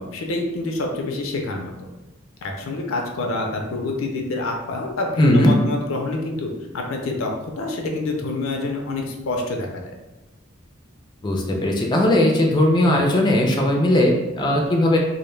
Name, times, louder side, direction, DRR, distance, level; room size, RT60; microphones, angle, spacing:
voice 1, 0.0-1.7 2.6-9.8, left 2 dB, 85° left, 2 dB, 0.4 m, -27 dB
voice 2, 5.2-5.5 11.2-15.0, left 1 dB, 20° left, 0 dB, 0.3 m, -18 dB
2.1 x 2.1 x 3.1 m, 1.1 s
head